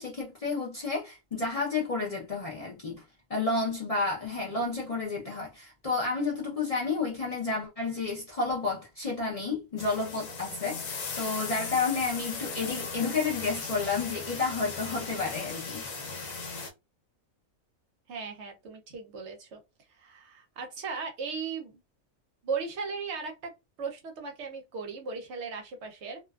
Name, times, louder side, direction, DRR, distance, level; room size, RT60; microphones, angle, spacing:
voice 1, 0.0-3.0 3.3-15.9, left 4 dB, 55° left, 0.4 m, -31 dB
sound 1, 9.8-16.7, left 4 dB, 75° left, 1.0 m, -37 dB
voice 2, 18.1-19.6 20.0-21.8 22.4-23.5 23.8-26.2, right 5 dB, 65° right, 0.8 m, -37 dB
2.5 x 2.3 x 2.2 m
omnidirectional pair, 1.4 m